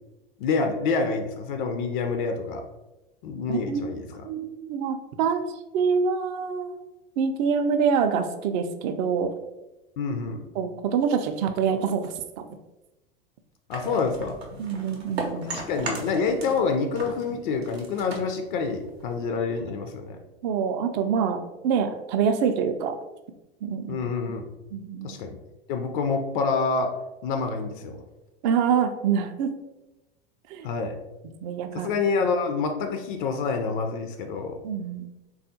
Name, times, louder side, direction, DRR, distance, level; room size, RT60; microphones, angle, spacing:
voice 1, 0.4-2.6 3.2-4.3 10.0-10.4 13.7-14.4 15.5-20.2 23.9-24.5 25.0-25.3 25.7-26.9 27.2-28.0 30.6-31.0 31.7-34.6, left 4 dB, 55° left, 5 dB, 0.4 m, -27 dB
voice 2, 3.5-3.8 4.2-5.4 5.7-6.8 7.2-9.3 10.6-12.1 14.6-15.5 20.4-23.0 23.6-24.0 24.7-25.2 28.4-29.5 30.5-30.7 31.4-31.9 34.6-35.1, right 6 dB, 45° right, 7 dB, 0.4 m, -25 dB
sound 1, 13.7-16.7 16.9-19.3, right 2 dB, 80° right, 0.7 m, -36 dB
3.4 x 2.3 x 2.7 m, 1.0 s
figure-of-eight pair, 80°, 31 cm